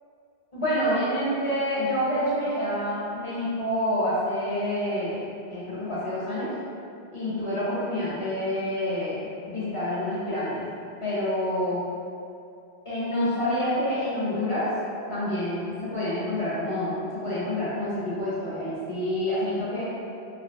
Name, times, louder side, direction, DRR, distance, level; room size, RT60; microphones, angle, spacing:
voice 1, 0.5-5.2 5.5-6.5 7.1-9.2 9.4-10.7 11.0-11.8 12.8-14.7 15.1-17.0 17.2-19.8, left 1 dB, 35° left, -10 dB, 0.8 m, -27 dB
3.0 x 2.6 x 2.5 m, 2.5 s
omnidirectional pair, 1.1 m